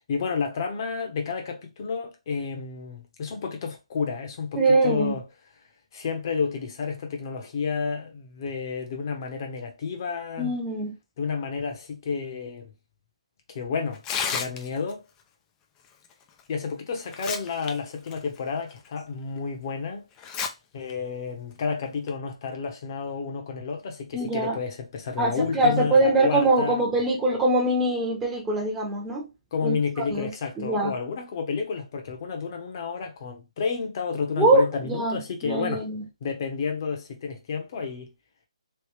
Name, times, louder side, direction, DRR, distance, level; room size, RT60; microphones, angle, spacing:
voice 1, 0.0-5.2 5.9-10.5 11.2-12.7 13.5-15.0 16.5-20.0 20.7-26.8 29.5-35.8 36.2-38.1, left 5 dB, 40° left, 1.0 m, -31 dB
voice 2, 4.6-5.1 10.4-10.9 24.1-24.6 25.2-29.3 29.6-30.3 30.6-30.9 34.4-36.0, right 2 dB, 10° right, 0.8 m, -23 dB
Tearing, 13.9-14.9 16.4-16.5 17.0-17.7 18.1-18.2 18.9-19.0 20.2-20.5 20.9-21.0 21.8-22.1, left 6 dB, 15° left, 0.4 m, -30 dB
3.3 x 2.8 x 3.2 m
figure-of-eight pair, 150°, 3 cm